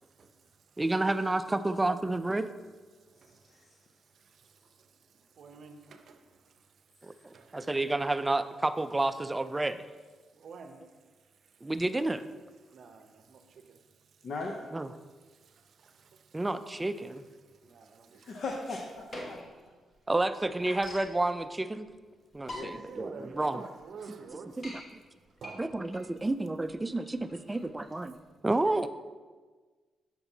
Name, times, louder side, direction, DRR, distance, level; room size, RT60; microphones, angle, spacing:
voice 1, 0.0-0.8 2.9-7.9 10.2-11.7 12.6-14.3 15.0-18.4 19.2-20.1 22.4-24.8 25.2-25.9 27.0-27.1 27.4-27.6 28.6-28.8, right 5 dB, 65° right, 0.6 m, -51 dB
voice 2, 0.8-2.5 7.0-7.1 7.5-9.8 11.6-12.2 14.7-14.9 16.3-17.2 20.1-21.9 22.3-23.6 24.6-24.8 25.6-28.1 28.4-28.9, right 2 dB, 15° right, 0.3 m, -30 dB
voice 3, 3.2-3.7 14.2-14.6 18.3-19.4 22.5-22.7, left 3 dB, 65° left, 0.6 m, -38 dB
sound 1, 18.6-19.6 20.0-20.1 20.2-21.1 21.9-22.0 22.3-23.0 23.5-23.6 23.8-23.9 24.3-24.8 25.4-28.3, left 1 dB, 40° left, 1.4 m, -44 dB
7.0 x 5.9 x 2.7 m
cardioid pair, 80°, 0 cm